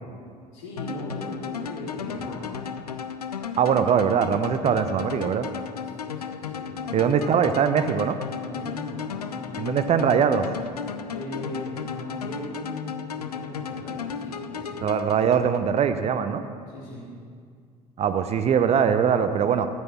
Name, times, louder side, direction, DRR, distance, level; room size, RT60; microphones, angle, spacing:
voice 1, 0.5-2.7 5.7-7.0 8.4-9.8 11.0-14.8 16.7-17.1, left 1 dB, 65° left, -5 dB, 3.7 m, -38 dB
sound 1, 0.8-15.8, left 7 dB, 85° left, 0.4 m, -35 dB
voice 2, 3.6-5.5 6.9-8.2 9.6-10.5 14.8-16.4 18.0-19.7, right 7 dB, 35° right, 10 dB, 0.6 m, -22 dB
14.0 x 6.2 x 7.1 m, 2.2 s
figure-of-eight pair, 60°, 19 cm